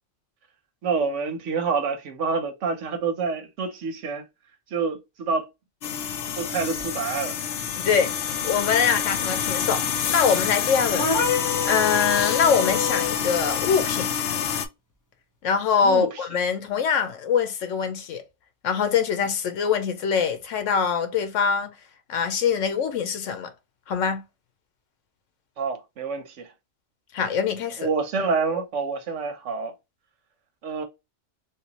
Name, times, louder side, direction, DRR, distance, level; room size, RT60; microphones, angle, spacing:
voice 1, 0.8-4.2 4.7-5.5 6.4-7.4 15.8-16.3 25.6-26.5 27.8-29.7 30.6-30.8, right 5 dB, 80° right, 1.1 m, -27 dB
sound 1, 5.8-14.7, left 8 dB, 65° left, 0.7 m, -27 dB
voice 2, 7.8-8.1 8.4-11.1 11.6-14.1 15.4-18.2 18.6-21.7 22.1-23.5 23.9-24.2 27.1-27.9, left 6 dB, 85° left, 1.1 m, -23 dB
sound 2, 11.0-13.2, left 5 dB, 20° left, 0.5 m, -27 dB
3.3 x 2.7 x 2.8 m
omnidirectional pair, 1.2 m